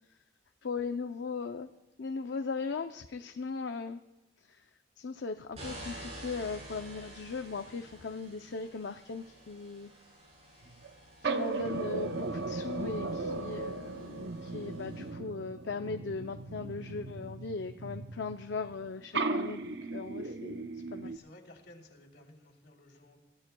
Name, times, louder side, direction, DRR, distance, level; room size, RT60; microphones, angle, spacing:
voice 1, 0.6-1.7 2.0-4.0 5.0-9.9 11.2-21.2, left 4 dB, 80° left, 7 dB, 0.6 m, -38 dB
sound 1, 5.5-15.1, right 1 dB, 40° right, 6.6 m, -50 dB
sound 2, 10.6-10.9 11.2-18.9 19.1-21.2, right 3 dB, 70° right, 0.7 m, -37 dB
voice 2, 21.0-23.2, left 1 dB, 65° left, -1 dB, 3.2 m, -55 dB
28.5 x 14.5 x 2.3 m, 1.0 s
head